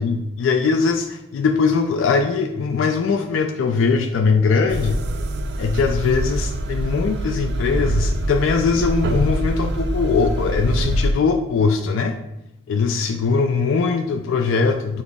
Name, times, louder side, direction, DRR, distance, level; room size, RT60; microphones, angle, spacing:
voice 1, 0.0-5.0 5.6-12.2 12.7-15.0, left 5 dB, 70° left, 4 dB, 0.3 m, -20 dB
sound 1, 4.7-11.1, right 1 dB, 60° right, 0.3 m, -24 dB
6.1 x 2.0 x 3.4 m, 0.87 s
head